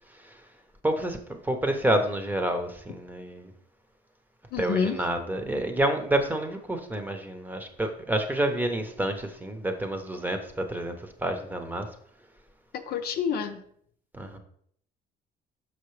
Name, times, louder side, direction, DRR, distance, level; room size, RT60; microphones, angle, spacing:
voice 1, 0.8-3.5 4.6-11.9 14.1-14.4, right 1 dB, 10° right, 6 dB, 0.9 m, -29 dB
voice 2, 4.5-5.0 12.9-13.6, left 7 dB, 65° left, 7 dB, 0.7 m, -28 dB
6.0 x 5.8 x 3.2 m, 0.66 s
cardioid pair, 110°, 17 cm